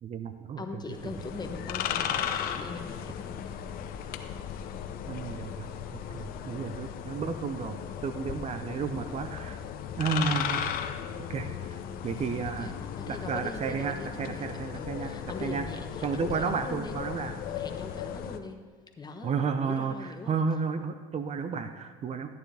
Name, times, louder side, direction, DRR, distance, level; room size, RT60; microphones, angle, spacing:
voice 1, 0.0-0.6 5.1-7.8 8.0-9.6 10.0-10.8 11.3-12.7 13.1-15.7 16.0-17.3 19.2-22.3, right 5 dB, 40° right, 9 dB, 0.7 m, -32 dB
voice 2, 0.6-3.4 12.5-17.0 17.2-18.6 19.0-20.4, left 3 dB, 25° left, 5 dB, 1.2 m, -41 dB
sound 1, 0.9-18.4, left 9 dB, 65° left, 0.8 m, -36 dB
13.5 x 9.5 x 3.4 m, 1.5 s
supercardioid pair, 85°, 16 cm